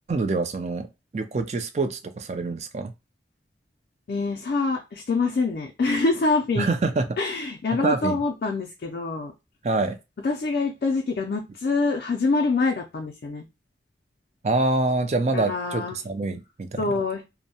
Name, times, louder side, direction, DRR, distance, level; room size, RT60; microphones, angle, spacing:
voice 1, 0.1-0.9 1.1-2.9 6.6-7.2 7.7-8.2 9.6-10.0 14.4-17.0, right 3 dB, 40° right, 0.4 m, -26 dB
voice 2, 4.1-6.7 7.2-9.3 10.2-13.4 15.3-16.0 16.8-17.2, left 3 dB, 60° left, 0.4 m, -25 dB
2.6 x 2.0 x 2.7 m
head